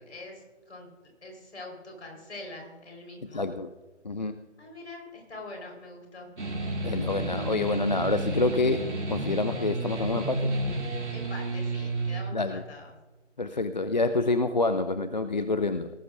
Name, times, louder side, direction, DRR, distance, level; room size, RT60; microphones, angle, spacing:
voice 1, 0.0-3.4 4.6-6.3 11.1-12.9, left 2 dB, 60° left, 2 dB, 4.5 m, -44 dB
voice 2, 3.3-3.7 4.0-4.4 6.8-10.6 12.3-12.6 13.4-15.9, left 3 dB, 40° left, 10 dB, 0.4 m, -27 dB
sound 1, 6.4-12.2, right 2 dB, 65° right, 2.8 m, -31 dB
18.5 x 12.0 x 2.6 m, 1.2 s
figure-of-eight pair, 140°, 37 cm